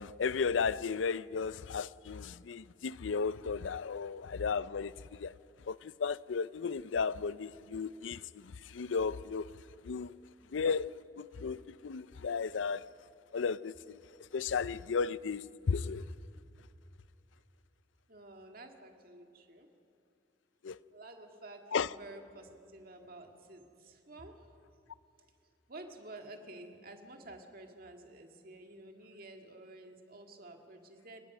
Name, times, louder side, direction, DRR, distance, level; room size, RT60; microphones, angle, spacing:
voice 1, 0.0-5.3 5.7-9.5 9.8-10.2 10.5-12.9 13.3-14.0 14.3-16.0 20.6-20.8 21.7-21.9, left 5 dB, 90° left, 0.5 m, -34 dB
voice 2, 18.1-19.7 20.9-24.5 25.7-31.2, right 2 dB, 50° right, 2.0 m, -51 dB
29.5 x 18.0 x 6.1 m
head